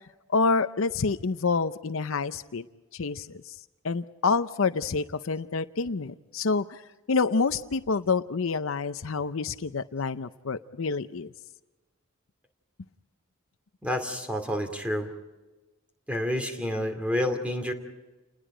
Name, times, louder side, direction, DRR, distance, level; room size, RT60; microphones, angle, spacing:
voice 1, 0.3-2.7 2.9-3.6 3.8-6.8 7.1-11.3, left 4 dB, 65° left, 12 dB, 0.6 m, -27 dB
voice 2, 13.8-15.1 16.1-17.7, equal, 5° right, 5 dB, 2.6 m, -29 dB
29.5 x 20.5 x 5.0 m, 1.1 s
head